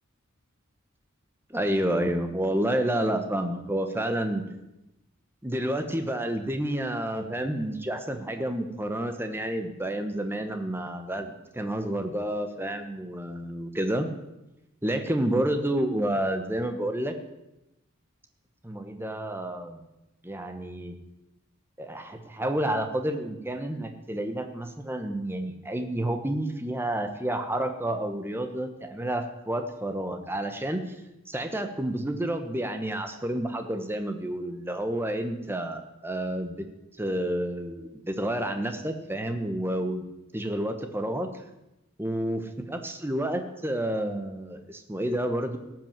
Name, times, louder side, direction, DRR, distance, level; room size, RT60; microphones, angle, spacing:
voice 1, 1.5-4.4 5.4-14.1 14.8-17.2 18.6-19.8 20.2-20.9 21.8-31.0 31.3-36.7 37.0-40.0 40.3-41.3 42.0-45.6, right 1 dB, 10° right, 6 dB, 1.1 m, -30 dB
17.0 x 6.0 x 7.3 m, 0.94 s
head